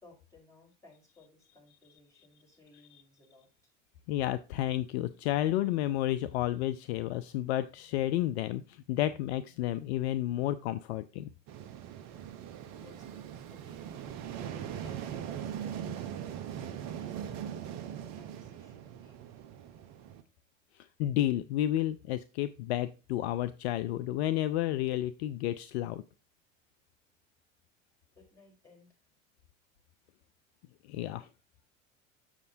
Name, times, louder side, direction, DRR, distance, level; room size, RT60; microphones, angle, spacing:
voice 1, 0.0-3.7 12.7-14.0 14.4-15.9 16.6-19.2 28.1-29.0, left 3 dB, 5° left, -3 dB, 3.9 m, -59 dB
voice 2, 4.1-11.3 21.0-26.0 30.9-31.3, left 13 dB, 55° left, 12 dB, 0.5 m, -31 dB
sound 1, 11.5-20.2, right 9 dB, 45° right, 0.8 m, -41 dB
7.3 x 6.5 x 2.7 m, 0.32 s
figure-of-eight pair, 75°, 39 cm